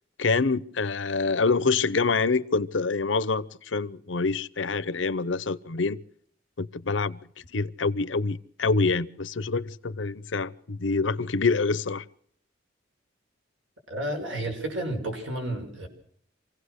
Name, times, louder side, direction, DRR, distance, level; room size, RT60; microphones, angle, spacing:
voice 1, 0.2-6.0 6.6-7.2 7.5-12.0, left 4 dB, 80° left, 0.8 m, -26 dB
voice 2, 13.9-15.9, right 1 dB, 90° right, 6.4 m, -31 dB
26.5 x 16.5 x 6.6 m
head